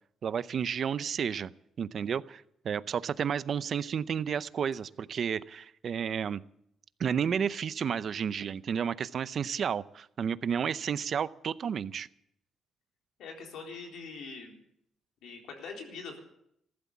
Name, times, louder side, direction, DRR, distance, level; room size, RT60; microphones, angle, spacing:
voice 1, 0.2-1.5 1.8-6.4 7.0-12.1, right 7 dB, 55° right, 16 dB, 0.6 m, -31 dB
voice 2, 13.2-14.6 15.2-16.2, left 4 dB, 80° left, 2 dB, 3.9 m, -43 dB
15.0 x 12.0 x 7.2 m, 0.74 s
cardioid pair, 90°, 0 cm